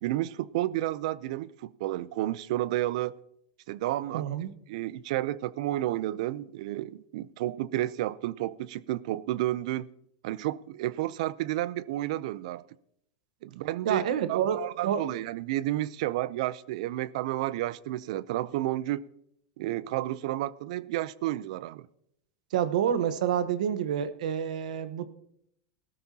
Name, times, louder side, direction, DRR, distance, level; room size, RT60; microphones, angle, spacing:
voice 1, 0.0-3.1 3.7-4.2 4.7-9.9 10.2-12.6 13.4-14.0 14.3-19.0 19.6-21.9, right 15 dB, 65° right, 19 dB, 0.5 m, -31 dB
voice 2, 4.1-4.5 13.8-15.1 22.5-25.1, right 9 dB, 80° right, 12 dB, 1.1 m, -28 dB
19.0 x 13.0 x 2.8 m, 0.73 s
supercardioid pair, 150°, 4 cm